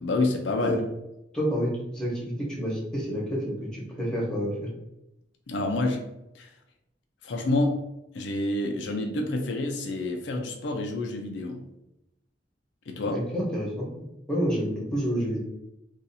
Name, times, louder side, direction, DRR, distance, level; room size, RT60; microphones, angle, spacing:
voice 1, 0.0-0.8 5.5-6.0 6.3-6.5 7.2-7.8 8.1-11.6 12.9-13.2, left 2 dB, 70° left, 3 dB, 0.5 m, -28 dB
voice 2, 1.3-4.5 13.1-13.9 14.3-15.4, equal, 5° left, -4 dB, 1.0 m, -28 dB
2.7 x 2.4 x 4.0 m, 0.87 s
head